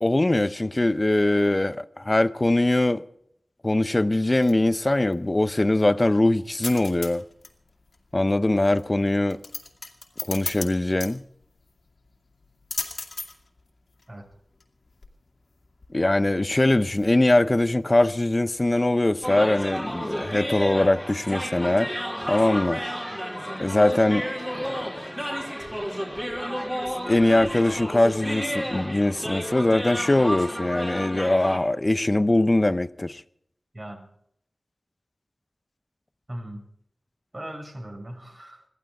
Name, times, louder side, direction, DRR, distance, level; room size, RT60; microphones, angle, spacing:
voice 1, 0.0-3.0 3.6-7.2 8.1-9.4 10.3-11.2 15.9-21.9 22.3-22.8 23.6-24.3 24.6-24.9 27.1-33.2, left 1 dB, 35° left, 0.8 m, -22 dB
sound 1, 4.2-18.9, left 3 dB, 75° left, 2.3 m, -40 dB
sound 2, 19.2-31.6, equal, 10° right, 4.3 m, -31 dB
voice 2, 33.7-34.1 36.3-36.6 37.3-38.7, right 1 dB, 35° right, 6.0 m, -38 dB
22.0 x 15.0 x 3.6 m
cardioid pair, 45°, 0 cm